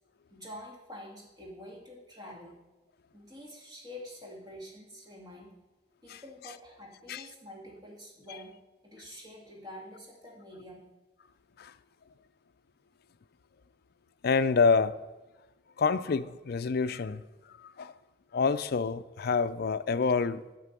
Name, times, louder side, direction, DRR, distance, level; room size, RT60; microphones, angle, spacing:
voice 1, 0.3-2.5 3.1-5.5 6.0-8.6 8.8-10.8, left 1 dB, 20° right, 2.4 m, -47 dB
voice 2, 14.2-15.0 15.8-17.2 17.5-17.9 18.3-20.4, left 5 dB, 55° left, 0.4 m, -27 dB
9.3 x 5.9 x 8.2 m
head